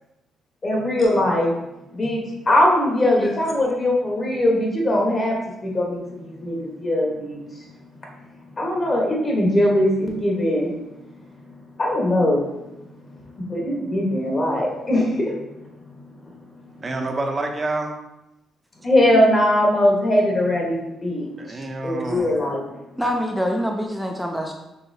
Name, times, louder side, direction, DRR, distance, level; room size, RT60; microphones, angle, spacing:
voice 1, 0.6-1.5 1.9-5.4 5.6-7.7 8.5-10.7 11.8-12.4 13.3-15.4 16.3-16.4 18.8-22.6, left 1 dB, 35° left, -1 dB, 1.3 m, -21 dB
voice 2, 3.0-3.4 23.0-24.5, equal, ahead, 1 dB, 0.5 m, -26 dB
voice 3, 16.8-17.9 21.4-22.4, right 2 dB, 30° right, 3 dB, 0.7 m, -28 dB
5.7 x 3.0 x 2.7 m, 0.93 s
cardioid pair, 90°, 0 cm